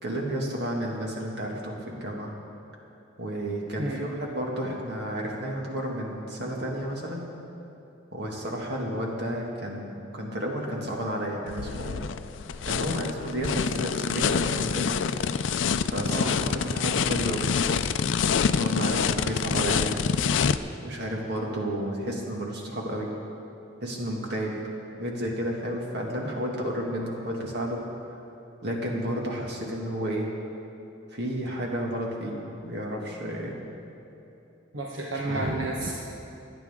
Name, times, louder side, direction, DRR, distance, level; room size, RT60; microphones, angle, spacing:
voice 1, 0.0-2.3 3.2-7.3 8.1-12.1 12.6-14.9 15.9-17.5 18.6-20.0 20.8-23.1 23.8-24.6 25.0-27.8 28.6-30.3 31.1-33.6 35.1-35.5, equal, 60° right, -1 dB, 2.2 m, -31 dB
sound 1, 11.5-20.6, left 6 dB, 75° left, 0.4 m, -26 dB
voice 2, 34.7-35.9, right 2 dB, 85° right, -2 dB, 1.1 m, -30 dB
27.0 x 9.1 x 3.7 m, 3.0 s
head